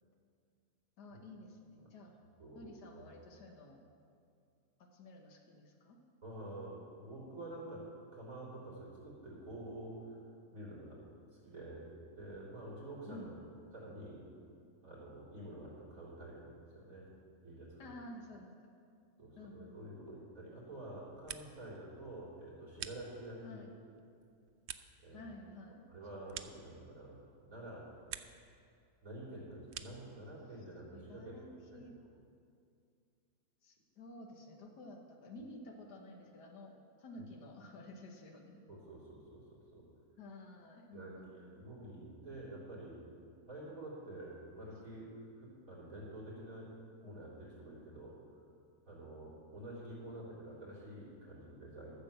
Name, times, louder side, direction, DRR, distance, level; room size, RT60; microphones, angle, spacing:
voice 1, 1.0-2.1 2.5-3.8 4.8-6.0 13.1-13.5 17.8-18.7 19.4-20.0 23.4-23.8 25.1-25.9 26.2-26.4 30.9-32.0 33.6-38.6 40.2-41.7, left 1 dB, 90° left, 2 dB, 1.7 m, -52 dB
voice 2, 6.2-11.0 11.3-13.3 13.7-14.3 14.8-17.1 17.4-17.9 19.2-23.7 25.0-25.3 25.9-27.9 29.0-31.5 31.7-31.9 37.1-37.2 38.7-39.9 40.9-43.0 43.5-46.7 47.0-48.4 48.9-52.0, right 1 dB, 55° right, -6 dB, 4.0 m, -49 dB
sound 1, 20.9-21.8 22.1-23.5 24.0-27.2 27.6-28.5 28.8-30.1, right 9 dB, 75° right, 0.6 m, -50 dB
13.5 x 7.0 x 7.4 m, 2.4 s
omnidirectional pair, 1.7 m